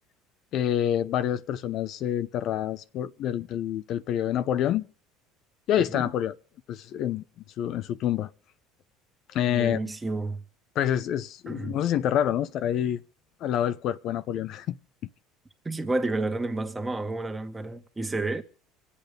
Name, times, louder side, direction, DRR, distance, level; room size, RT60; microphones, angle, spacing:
voice 1, 0.5-4.8 5.7-6.4 6.7-7.2 7.6-8.3 9.3-9.8 10.7-13.0 13.4-14.8, left 10 dB, 60° left, 0.7 m, -27 dB
voice 2, 9.5-10.4 11.5-11.7 15.7-18.4, right 2 dB, 15° right, 1.8 m, -30 dB
25.0 x 8.5 x 5.2 m
supercardioid pair, 90°, 0 cm